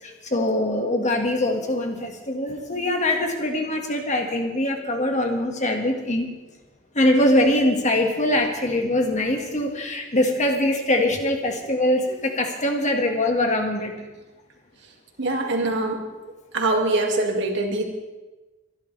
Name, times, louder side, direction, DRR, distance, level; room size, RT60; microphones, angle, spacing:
voice 1, 0.0-6.3 6.9-13.9, left 1 dB, 40° left, 3 dB, 1.9 m, -23 dB
voice 2, 15.2-16.0 16.5-17.8, right 2 dB, 65° right, 2 dB, 2.3 m, -23 dB
24.0 x 11.5 x 3.4 m, 1.1 s
head